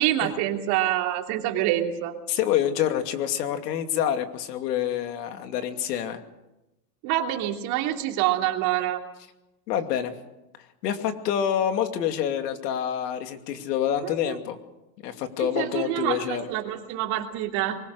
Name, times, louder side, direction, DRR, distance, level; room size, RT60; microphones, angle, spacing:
voice 1, 0.0-2.1 7.0-9.0 14.0-14.4 15.4-17.8, right 13 dB, 50° right, 3 dB, 3.2 m, -26 dB
voice 2, 2.3-6.2 9.7-10.2 10.8-14.6 15.0-16.5, left 10 dB, 85° left, 6 dB, 2.7 m, -27 dB
23.5 x 21.0 x 6.6 m, 0.97 s
supercardioid pair, 145°, 47 cm